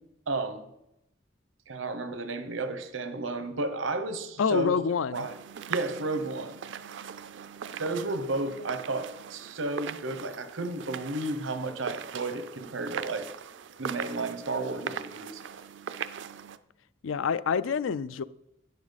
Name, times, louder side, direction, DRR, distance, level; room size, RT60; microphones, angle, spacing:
voice 1, 0.3-0.6 1.7-4.8 5.1-5.3 5.7-6.6 7.8-13.3 13.8-15.4, right 2 dB, 85° right, 1.1 m, -32 dB
voice 2, 4.4-5.3 17.0-18.2, left 6 dB, 85° left, 0.4 m, -27 dB
sound 1, 5.1-16.6, right 7 dB, 65° right, 0.4 m, -40 dB
11.0 x 9.6 x 4.1 m
head